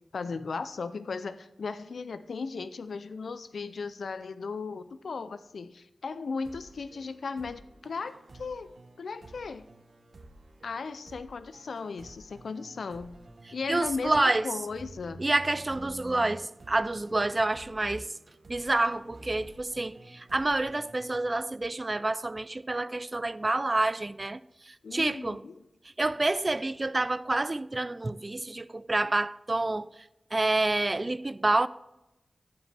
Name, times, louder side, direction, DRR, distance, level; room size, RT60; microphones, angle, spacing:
voice 1, 0.1-9.7 10.6-13.2 13.5-15.2 24.8-25.5, left 4 dB, 85° left, 0.4 m, -36 dB
sound 1, 6.4-21.9, right 2 dB, 60° right, 1.1 m, -54 dB
voice 2, 13.7-14.5 15.2-18.1 18.5-25.4 26.0-29.9 30.3-31.7, right 2 dB, 30° right, 0.3 m, -28 dB
15.0 x 5.2 x 3.3 m
wide cardioid pair, 80°, 0 cm